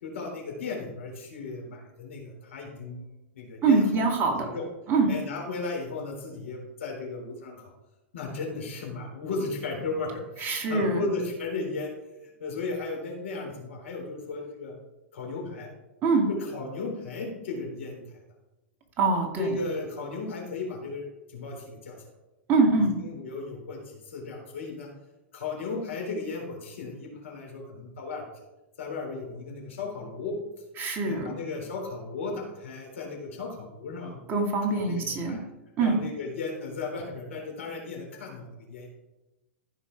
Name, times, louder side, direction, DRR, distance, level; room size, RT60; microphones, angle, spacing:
voice 1, 0.0-3.9 4.3-4.7 5.1-7.7 8.1-11.9 12.2-14.8 15.1-15.7 16.3-18.0 19.4-22.0 23.0-24.9 25.3-28.2 28.8-30.4 31.0-34.2 34.8-35.4 35.8-38.9, left 3 dB, 75° left, 0 dB, 3.9 m, -35 dB
voice 2, 3.6-4.5 4.9-5.1 10.4-11.0 16.0-16.3 19.0-19.6 22.5-22.9 30.8-31.3 34.3-35.4 35.8-36.0, right 3 dB, 35° right, 2 dB, 2.4 m, -24 dB
14.5 x 5.6 x 4.7 m, 0.99 s
hypercardioid pair, 105°, 7 cm